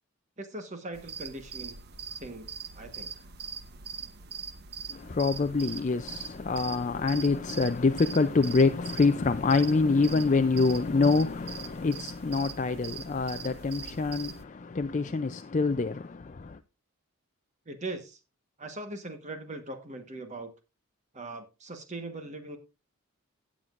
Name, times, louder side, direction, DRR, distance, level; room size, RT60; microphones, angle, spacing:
voice 1, 0.4-1.8 2.2-2.5 2.7-3.3 17.6-18.2 18.6-20.5 21.1-22.6, right 2 dB, 35° right, 1.3 m, -40 dB
sound 1, 0.9-14.4, right 6 dB, 50° right, 1.0 m, -42 dB
voice 2, 4.9-16.6, left 3 dB, 35° left, 0.4 m, -26 dB
17.5 x 7.4 x 2.5 m
head